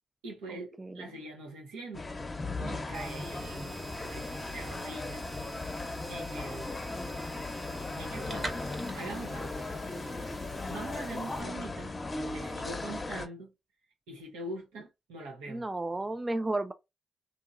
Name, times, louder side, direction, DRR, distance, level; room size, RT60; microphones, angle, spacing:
voice 1, 0.2-2.2 2.6-3.8 4.0-5.2 6.1-6.8 8.0-8.5 8.9-9.5 10.7-11.9 12.3-13.5 14.1-15.7, right 2 dB, 90° right, 1.0 m, -43 dB
sound 1, 1.9-13.3, left 2 dB, 35° left, 0.7 m, -37 dB
sound 2, 2.9-11.4, right 2 dB, 45° right, 1.2 m, -45 dB
voice 2, 15.5-16.7, right 2 dB, 25° right, 0.4 m, -32 dB
2.8 x 2.8 x 2.4 m
supercardioid pair, 45°, 0 cm